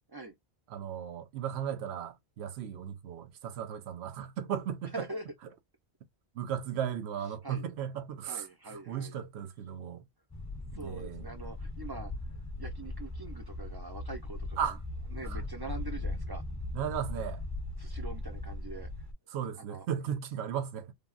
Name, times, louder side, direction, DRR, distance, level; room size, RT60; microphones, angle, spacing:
voice 1, 0.7-4.9 6.3-10.0 10.7-11.3 14.6-14.8 15.2-15.4 15.7-15.8 16.7-17.4 19.3-20.9, right 9 dB, 80° right, 0.8 m, -36 dB
voice 2, 4.9-5.2 7.4-7.7 8.2-9.2 10.7-12.1 12.6-14.6 15.1-16.4 17.8-18.9 19.6-19.9, right 3 dB, 35° right, 0.4 m, -43 dB
sound 1, 10.3-19.1, left 2 dB, 20° left, 0.6 m, -39 dB
3.4 x 2.1 x 2.4 m
omnidirectional pair, 1.1 m